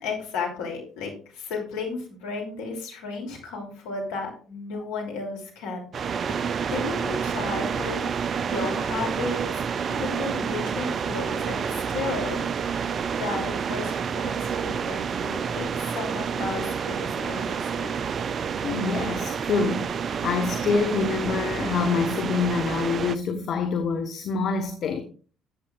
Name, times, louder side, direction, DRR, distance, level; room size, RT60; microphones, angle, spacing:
voice 1, 0.0-5.9 6.3-6.4 6.7-9.6 9.9-12.4 13.2-18.0, left 4 dB, 70° left, 3.1 m, -33 dB
sound 1, 5.9-23.2, right 7 dB, 45° right, 0.5 m, -29 dB
voice 2, 18.6-25.0, left 5 dB, 55° left, 1.0 m, -26 dB
14.0 x 8.5 x 2.5 m
figure-of-eight pair, 50°, 0 cm